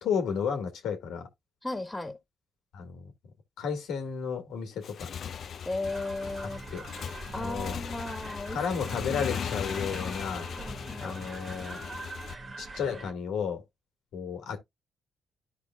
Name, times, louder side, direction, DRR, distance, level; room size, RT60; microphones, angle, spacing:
voice 1, 0.0-1.3 2.7-3.1 3.6-5.1 6.7-6.8 7.4-7.7 8.5-10.4 11.0-11.8 12.6-13.6 14.1-14.6, left 6 dB, 80° left, 1.7 m, -32 dB
voice 2, 1.6-2.2 5.7-6.8 7.3-8.6 10.6-11.2, left 2 dB, 10° left, 2.1 m, -36 dB
Motorcycle / Engine, 4.7-12.3, left 7 dB, 60° left, 0.5 m, -38 dB
sound 1, 5.8-13.1, right 3 dB, 30° right, 1.7 m, -43 dB
13.0 x 4.9 x 2.2 m
cardioid pair, 90°, 0 cm